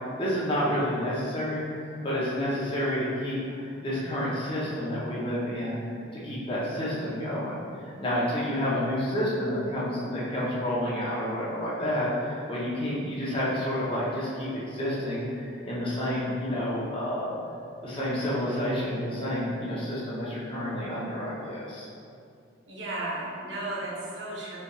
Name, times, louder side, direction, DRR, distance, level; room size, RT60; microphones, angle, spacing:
voice 1, 0.2-1.6 2.0-5.8 6.2-17.3 17.8-21.9, equal, 25° left, -8 dB, 0.8 m, -29 dB
voice 2, 22.7-24.6, right 2 dB, 60° right, -5 dB, 0.7 m, -34 dB
4.0 x 3.3 x 2.3 m, 2.4 s
head